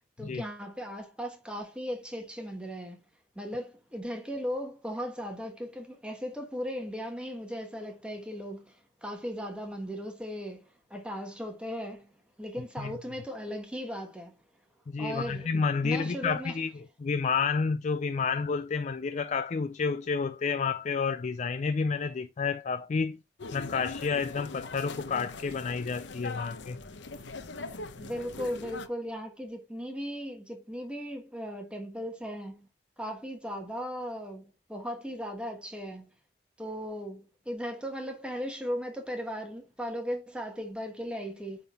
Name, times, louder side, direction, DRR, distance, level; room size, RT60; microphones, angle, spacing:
voice 1, 0.2-3.0 3.3-12.1 12.4-14.3 15.0-15.5 15.8-16.6 28.0-32.7 33.0-36.1 36.6-41.6, equal, 5° right, 1.3 m, -37 dB
voice 2, 14.9-16.7 17.0-23.2 23.5-26.8, left 5 dB, 40° left, 0.4 m, -30 dB
sound 1, 23.4-28.9, left 3 dB, 90° left, 0.9 m, -41 dB
9.0 x 3.9 x 4.2 m
head